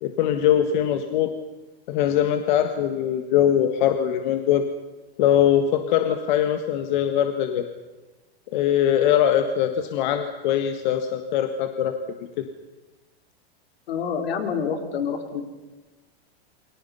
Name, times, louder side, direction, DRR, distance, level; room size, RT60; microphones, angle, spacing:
voice 1, 0.0-1.3 1.9-4.6 5.2-7.7 8.5-12.0 12.4-12.5, left 10 dB, 45° left, 7 dB, 1.7 m, -22 dB
voice 2, 13.9-15.4, left 6 dB, 70° left, 5 dB, 4.5 m, -27 dB
29.0 x 24.0 x 5.7 m, 1.2 s
supercardioid pair, 170°, 32 cm